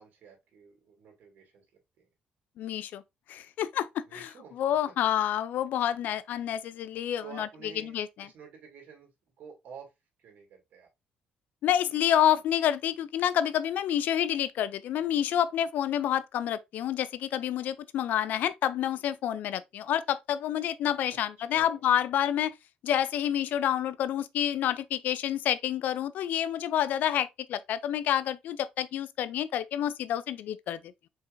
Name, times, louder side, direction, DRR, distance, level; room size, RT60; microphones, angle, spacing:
voice 1, 0.0-1.7 4.1-4.6 7.2-9.1 9.4-9.9 10.2-10.9 21.4-21.8, right 6 dB, 70° right, 2.5 m, -50 dB
voice 2, 2.6-3.0 3.3-4.3 4.6-7.5 7.9-8.3 11.6-22.5 22.8-30.8, left 10 dB, 75° left, 0.4 m, -28 dB
4.5 x 4.4 x 2.6 m
cardioid pair, 85°, 3 cm